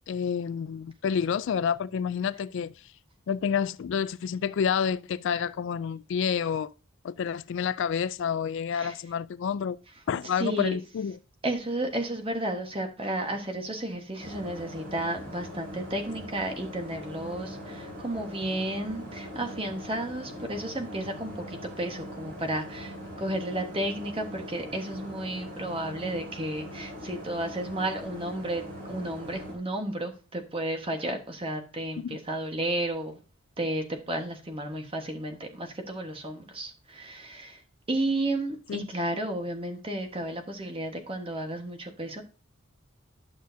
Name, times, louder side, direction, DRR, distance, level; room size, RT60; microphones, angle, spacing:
voice 1, 0.1-2.7 3.3-6.7 7.0-9.8 10.1-11.2 32.0-32.2 38.7-38.9, left 7 dB, 60° left, 0.3 m, -29 dB
voice 2, 10.4-10.8 11.4-33.2 33.6-37.6 37.9-42.2, right 1 dB, 25° right, 1.3 m, -32 dB
sound 1, 14.2-29.5, equal, 50° right, 4.4 m, -41 dB
11.5 x 6.2 x 2.7 m
head